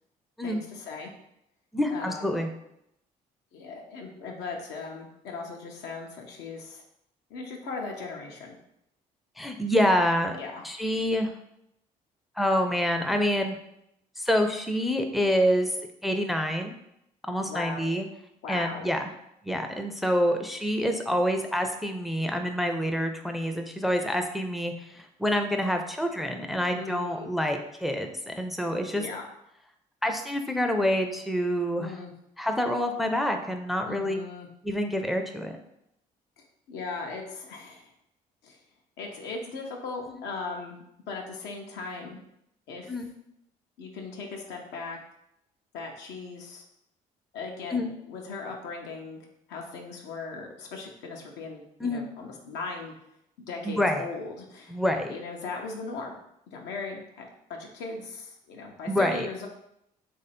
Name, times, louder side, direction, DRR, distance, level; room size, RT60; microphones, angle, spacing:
voice 1, 0.4-1.1 1.9-2.5 3.5-6.8 7.3-8.6 10.3-10.6 17.4-17.9 18.4-18.9 26.7-27.3 28.9-29.3 31.8-32.1 33.8-34.5 36.4-37.9 38.4-38.6 39.0-42.2 42.7-43.0 43.8-45.0 45.7-46.6 47.3-52.9 53.5-56.1 56.5-59.5, left 4 dB, 80° left, 1 dB, 0.8 m, -38 dB
voice 2, 1.7-2.5 9.4-10.4 10.6-11.3 12.4-13.6 14.2-15.7 16.0-16.7 17.2-18.1 18.5-19.0 19.5-29.0 30.0-31.9 32.4-34.2 34.6-35.5 42.9-43.1 47.7-47.9 51.8-52.1 53.7-54.0 54.7-55.1 58.9-59.3, equal, ahead, 5 dB, 0.5 m, -27 dB
3.1 x 2.7 x 4.2 m, 0.79 s
supercardioid pair, 70°, 18 cm